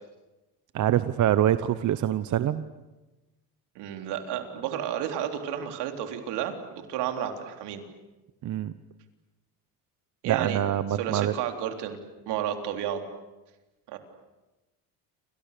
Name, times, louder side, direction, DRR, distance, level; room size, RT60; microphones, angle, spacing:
voice 1, 0.7-2.7 8.4-8.7 10.2-11.3, right 11 dB, 45° right, 12 dB, 1.0 m, -25 dB
voice 2, 3.8-7.8 10.2-10.6 11.0-12.0 12.3-13.0 13.9-14.0, right 10 dB, 70° right, 5 dB, 3.7 m, -32 dB
29.5 x 26.0 x 6.9 m, 1.1 s
cardioid pair, 115°, 41 cm